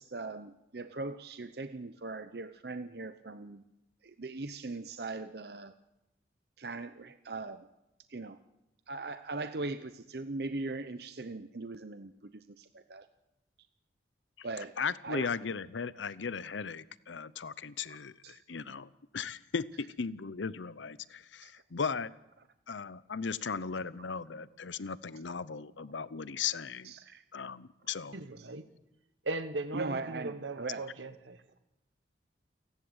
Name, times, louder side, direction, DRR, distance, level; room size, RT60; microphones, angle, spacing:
voice 1, 0.0-3.6 4.0-5.7 6.6-7.6 8.1-8.4 8.9-12.1 12.6-12.7 12.9-13.0 14.4-14.7 15.0-15.3 17.9-18.0 18.2-18.3 21.4-21.5 26.8-27.2 29.7-30.8, right 3 dB, 55° right, 10 dB, 0.7 m, -39 dB
voice 2, 14.8-22.1 22.7-26.9 27.3-28.2, left 5 dB, 80° left, 17 dB, 0.7 m, -37 dB
voice 3, 28.1-28.6 29.2-31.4, right 2 dB, 90° right, 11 dB, 1.3 m, -38 dB
29.0 x 11.5 x 8.0 m, 0.92 s
head